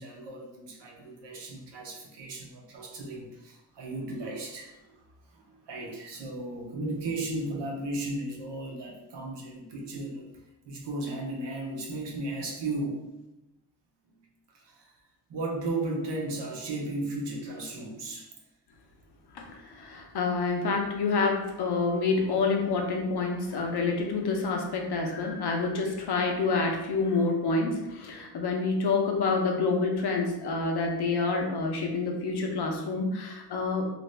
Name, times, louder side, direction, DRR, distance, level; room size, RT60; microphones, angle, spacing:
voice 1, 0.0-10.3 10.6-13.1 14.5-14.9 15.3-18.3, right 2 dB, 85° right, -1 dB, 0.8 m, -35 dB
voice 2, 19.3-33.8, left 4 dB, 70° left, 2 dB, 0.7 m, -28 dB
2.7 x 2.5 x 3.2 m, 0.94 s
cardioid pair, 80°, 41 cm